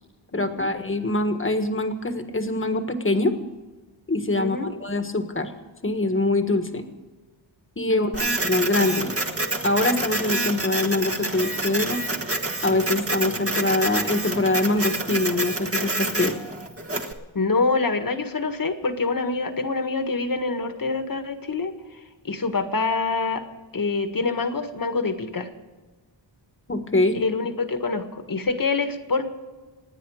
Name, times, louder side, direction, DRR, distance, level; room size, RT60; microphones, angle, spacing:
voice 1, 0.3-3.3 4.1-5.5 5.8-6.9 7.8-9.1 9.6-12.0 12.6-16.3 26.7-27.2, left 2 dB, 25° left, 7 dB, 1.6 m, -24 dB
voice 2, 4.4-4.7 7.9-8.3 17.3-23.4 23.7-25.5 27.1-29.3, left 4 dB, 45° left, 7 dB, 1.7 m, -26 dB
Printer, 8.1-17.1, right 2 dB, 30° right, 1.5 m, -28 dB
27.5 x 9.9 x 4.9 m, 1.3 s
wide cardioid pair, 125°, 47 cm